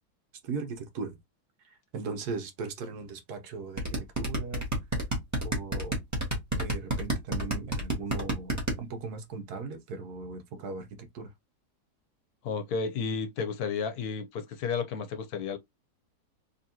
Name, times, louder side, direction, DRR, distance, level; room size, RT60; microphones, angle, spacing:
voice 1, 0.4-1.2 1.6-4.7 5.4-6.0 6.5-11.3, right 4 dB, 75° right, 1.4 m, -38 dB
sound 1, 3.8-8.7, right 1 dB, 10° right, 1.4 m, -28 dB
voice 2, 12.4-15.6, left 5 dB, 75° left, 1.2 m, -32 dB
4.1 x 2.9 x 2.8 m
omnidirectional pair, 1.7 m